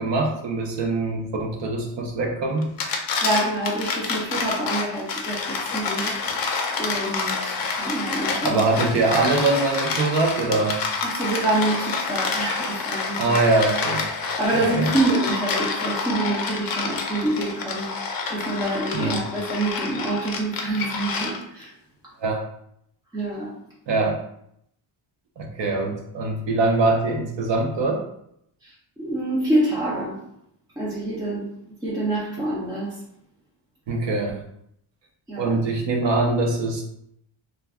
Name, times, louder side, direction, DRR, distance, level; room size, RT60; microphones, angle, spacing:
voice 1, 0.0-2.7 8.4-10.8 13.2-14.1 14.7-14.9 18.9-19.2 22.2-22.4 23.9-24.2 25.4-28.0 33.9-34.4 35.4-36.8, right 3 dB, 60° right, 1 dB, 0.7 m, -23 dB
sound 1, 2.6-21.6, left 4 dB, 50° left, 0.5 m, -28 dB
voice 2, 3.2-6.2 6.8-8.6 11.0-13.2 14.4-21.7 23.1-23.6 28.6-30.2 30.8-31.5 31.8-33.0 35.3-35.6, right 2 dB, 10° right, -7 dB, 0.3 m, -26 dB
2.3 x 2.2 x 3.4 m, 0.74 s
wide cardioid pair, 155°, 48 cm